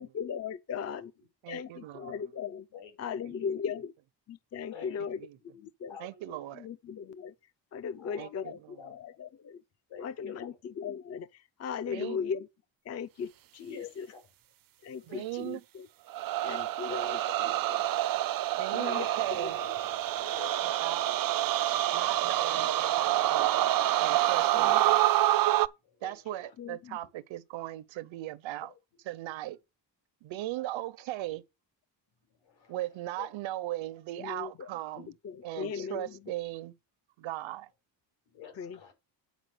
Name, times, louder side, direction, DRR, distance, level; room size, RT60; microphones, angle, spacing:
voice 1, 0.0-1.1 1.5-2.6 3.0-3.9 4.3-5.2 5.5-5.9 6.6-7.3 7.7-8.6 8.9-9.6 10.0-12.5 12.9-14.1 14.8-15.9 16.4-17.2 18.7-19.1 19.4-19.7 24.6-24.8 26.6-27.0 34.2-34.7 35.0-36.1 38.6-38.9, left 6 dB, 35° left, 0.5 m, -38 dB
voice 2, 1.4-2.2 3.2-3.3 6.0-6.6 8.2-8.5 11.9-12.2 15.0-15.6 18.6-19.6 20.6-21.1 21.9-23.5 24.0-25.1 26.0-28.7 29.1-29.6 30.2-31.4 32.7-35.1 35.4-36.8 37.2-37.7, right 15 dB, 90° right, 0.9 m, -38 dB
voice 3, 2.7-3.5 4.7-5.0 5.3-5.5 5.9-6.7 7.9-8.5 8.8-8.9 9.9-10.6 11.8-12.1 13.6-14.3 15.0-15.4 16.7-17.6 18.8-21.2 22.8-22.9 24.2-24.4 25.8-26.5 28.6-28.8 32.2-33.3 35.8-35.9 38.3-38.9, left 7 dB, 75° left, 6.0 m, -50 dB
sound 1, 16.1-25.7, right 14 dB, 50° right, 0.5 m, -27 dB
9.3 x 4.8 x 7.8 m
cardioid pair, 145°, 45 cm